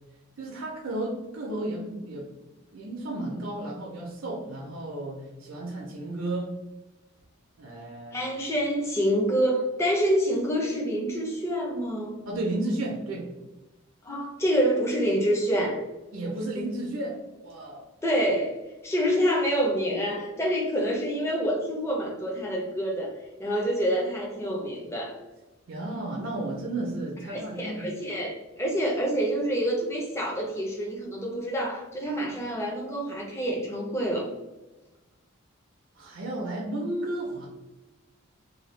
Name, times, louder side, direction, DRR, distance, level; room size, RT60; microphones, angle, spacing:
voice 1, 0.4-2.3 2.7-6.5 7.6-8.3 12.3-13.3 16.1-17.9 25.7-28.0 35.9-37.5, right 1 dB, 65° right, -2 dB, 0.5 m, -33 dB
voice 2, 8.1-12.2 14.0-15.8 18.0-18.6 18.8-23.1 23.4-25.2 27.3-34.3, equal, 10° left, -1 dB, 0.5 m, -27 dB
2.7 x 2.2 x 3.1 m, 1.1 s
head